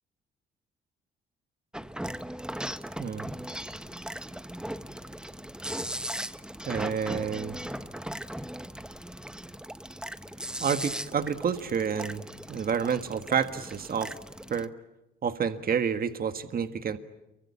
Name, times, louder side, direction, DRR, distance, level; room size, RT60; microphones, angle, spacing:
sound 1, 1.7-14.7, right 1 dB, 5° right, 1.3 m, -38 dB
voice 1, 3.0-3.3 6.7-7.6 10.6-14.1 14.5-14.7 15.2-17.0, right 7 dB, 50° right, 9 dB, 1.7 m, -29 dB
28.5 x 24.0 x 8.4 m, 0.93 s
cardioid pair, 90°, 20 cm